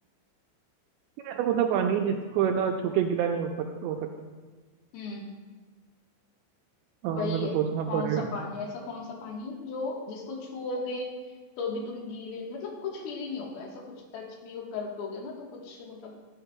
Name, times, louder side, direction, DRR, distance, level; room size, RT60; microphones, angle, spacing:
voice 1, 1.2-4.0 7.0-8.3, right 8 dB, 85° right, 3 dB, 2.5 m, -27 dB
voice 2, 7.1-7.6 7.9-11.1 11.6-16.1, left 3 dB, 65° left, -1 dB, 2.8 m, -36 dB
13.0 x 11.5 x 2.3 m, 1.4 s
omnidirectional pair, 5.5 m